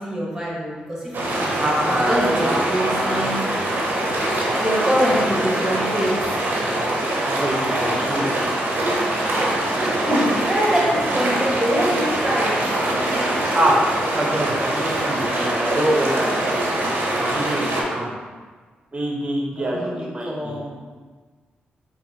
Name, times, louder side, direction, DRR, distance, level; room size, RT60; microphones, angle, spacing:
voice 1, 0.0-3.4 4.6-6.1 9.8-12.5 19.5-20.7, equal, 10° right, -5 dB, 1.4 m, -24 dB
sound 1, 1.1-17.8, right 1 dB, 65° right, 0.7 m, -23 dB
voice 2, 1.6-3.3 7.3-8.5 13.5-13.9 14.1-16.6 17.2-18.1 18.9-20.6, right 1 dB, 30° right, -2 dB, 0.9 m, -25 dB
4.5 x 2.6 x 2.8 m, 1.4 s
cardioid pair, 55°, 4 cm